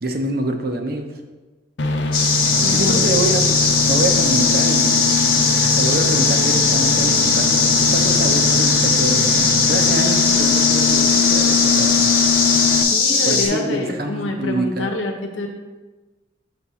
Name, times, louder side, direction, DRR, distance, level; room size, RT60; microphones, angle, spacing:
voice 1, 0.0-1.1 2.7-3.6 3.8-12.1 13.2-14.9, right 2 dB, 50° right, 4 dB, 0.7 m, -26 dB
sound 1, 1.8-12.8, left 4 dB, 65° left, 0.5 m, -22 dB
sound 2, 2.1-13.5, left 4 dB, 50° left, 1.1 m, -18 dB
voice 2, 2.6-3.2 12.9-15.5, left 2 dB, 90° left, 3 dB, 1.0 m, -26 dB
7.1 x 3.6 x 5.5 m, 1.2 s
head